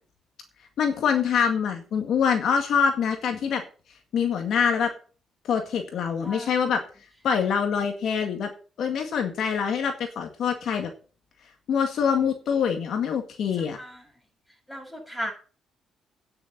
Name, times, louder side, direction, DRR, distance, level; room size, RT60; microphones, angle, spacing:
voice 1, 0.8-3.6 4.1-4.9 5.5-6.8 7.2-8.5 8.8-10.9 11.7-13.8, left 7 dB, 70° left, 5 dB, 1.9 m, -25 dB
voice 2, 13.6-14.0 14.7-15.3, equal, 5° left, 1 dB, 6.9 m, -36 dB
9.6 x 6.8 x 6.8 m, 0.38 s
cardioid pair, 90°, 0 cm